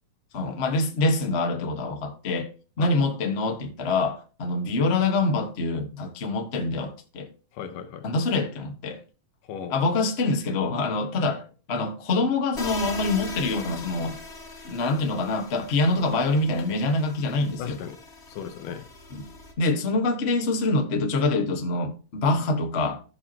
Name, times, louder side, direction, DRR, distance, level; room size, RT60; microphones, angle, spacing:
voice 1, 0.3-2.5 2.8-7.3 8.0-9.0 9.7-11.4 11.7-14.2 14.6-17.8 19.1-19.3 19.6-23.0, left 2 dB, 55° left, 0.6 m, -25 dB
voice 2, 7.5-8.1 9.4-9.8 11.3-11.4 17.6-18.0 18.3-18.9, left 8 dB, 80° left, 2.5 m, -37 dB
sound 1, 12.5-19.5, left 3 dB, 30° left, 1.4 m, -40 dB
15.0 x 5.8 x 2.9 m
omnidirectional pair, 3.6 m